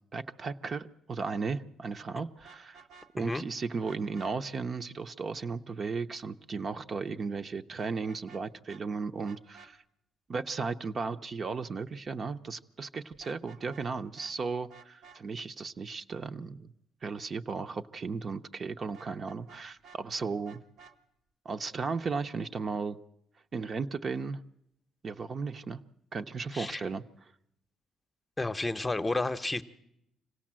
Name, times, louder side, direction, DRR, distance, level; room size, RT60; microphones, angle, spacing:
voice 1, 0.1-2.8 3.1-9.8 10.3-16.7 17.0-20.6 21.4-23.0 23.5-24.4 25.0-25.8 26.1-27.0, right 4 dB, 45° right, 8 dB, 0.8 m, -35 dB
Vehicle horn car horn honking, 2.4-3.5 3.8-4.3 7.8-8.4 8.7-8.8 9.2-9.7 13.1-13.9 14.2-14.3 14.7-15.2 18.9-20.0 20.4-21.0, right 5 dB, 75° right, 1.5 m, -54 dB
voice 2, 26.5-26.8 28.4-29.6, left 2 dB, 15° left, 10 dB, 0.9 m, -31 dB
25.5 x 17.0 x 7.6 m, 0.81 s
cardioid pair, 90°, 0 cm